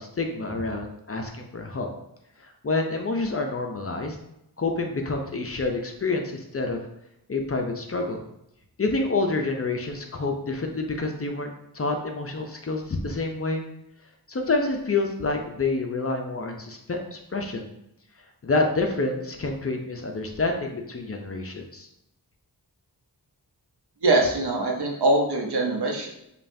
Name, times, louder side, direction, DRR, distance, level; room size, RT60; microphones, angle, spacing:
voice 1, 0.0-1.9 2.4-4.2 4.6-6.8 7.3-8.2 8.8-11.5 11.7-13.6 14.3-17.7 18.4-21.9, left 3 dB, 35° left, 2 dB, 0.5 m, -28 dB
voice 2, 24.0-26.1, right 2 dB, 75° right, 0 dB, 0.8 m, -22 dB
5.2 x 2.3 x 2.7 m, 0.83 s
wide cardioid pair, 90°, 40 cm